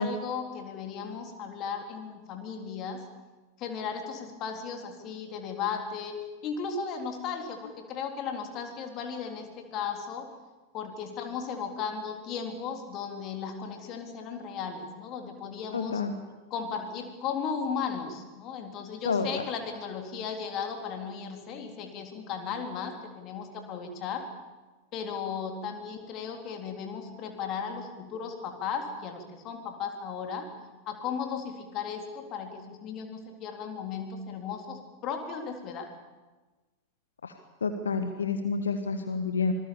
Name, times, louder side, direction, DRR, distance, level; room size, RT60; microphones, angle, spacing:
voice 1, 0.0-3.0 3.6-10.3 10.7-16.0 16.5-24.2 24.9-30.5 30.9-35.9, left 6 dB, 35° left, 4 dB, 3.8 m, -36 dB
voice 2, 15.7-16.1 19.0-19.5 37.2-37.3 37.6-39.5, left 4 dB, 70° left, 8 dB, 1.4 m, -29 dB
26.5 x 20.5 x 7.2 m, 1.2 s
figure-of-eight pair, 90°, 0 cm